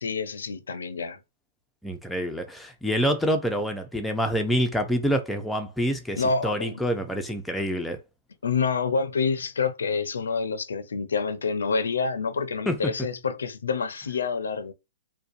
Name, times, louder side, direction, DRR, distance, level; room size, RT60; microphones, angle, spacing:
voice 1, 0.0-1.2 6.2-6.7 8.4-14.7, left 5 dB, 85° left, 0.4 m, -27 dB
voice 2, 1.8-8.0 12.7-12.9, equal, 5° left, 0.4 m, -27 dB
2.5 x 2.1 x 2.4 m
hypercardioid pair, 135°, 0 cm